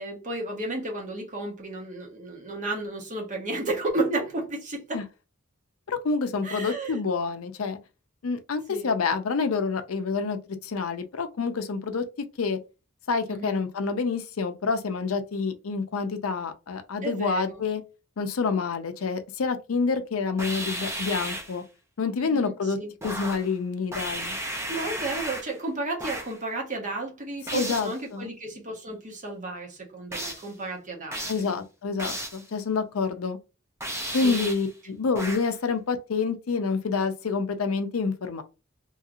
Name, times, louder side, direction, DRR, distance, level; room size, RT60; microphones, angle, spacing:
voice 1, 0.0-5.0 6.4-7.0 8.7-8.9 13.3-13.6 17.0-17.6 22.2-22.9 24.7-31.6 34.1-34.5, right 2 dB, 40° right, 1.1 m, -33 dB
voice 2, 5.9-7.8 8.2-12.0 12.4-12.6 13.1-17.8 18.2-21.6 22.0-22.8 23.0-24.4 27.5-28.3 31.3-33.4 34.1-38.4, left 4 dB, 85° left, 0.5 m, -28 dB
sound 1, 20.4-21.6 23.0-23.5 23.9-25.6 26.0-26.4 27.5-28.0 30.1-30.5 31.1-31.5 32.0-32.5 33.8-34.7 35.1-35.5, right 1 dB, 15° right, 0.6 m, -34 dB
3.1 x 2.9 x 2.4 m
head